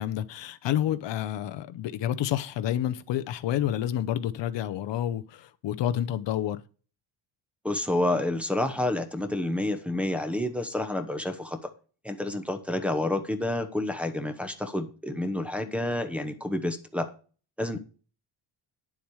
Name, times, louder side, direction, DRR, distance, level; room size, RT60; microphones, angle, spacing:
voice 1, 0.0-6.6, left 11 dB, 60° left, 0.8 m, -29 dB
voice 2, 7.6-11.6 12.0-17.1 17.6-17.8, left 1 dB, 5° right, 0.9 m, -29 dB
10.0 x 7.3 x 4.8 m
cardioid pair, 155°, 49 cm